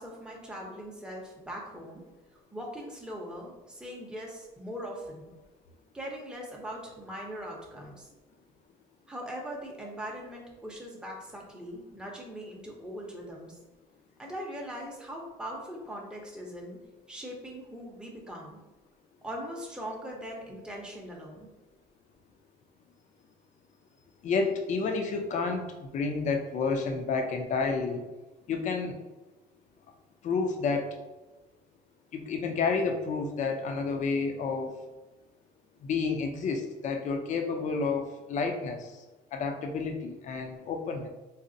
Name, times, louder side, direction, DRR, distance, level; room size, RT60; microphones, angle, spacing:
voice 1, 0.0-2.0 2.5-5.3 5.9-8.1 9.1-13.6 14.2-16.8 17.1-18.6 19.2-21.5, equal, 5° right, -2 dB, 0.7 m, -40 dB
voice 2, 24.2-25.6 25.9-28.0 28.5-28.9 30.2-30.9 32.1-34.7 35.8-38.9 39.3-41.1, left 4 dB, 45° left, 5 dB, 0.5 m, -30 dB
3.9 x 2.0 x 2.6 m, 1.1 s
cardioid pair, 110°, 17 cm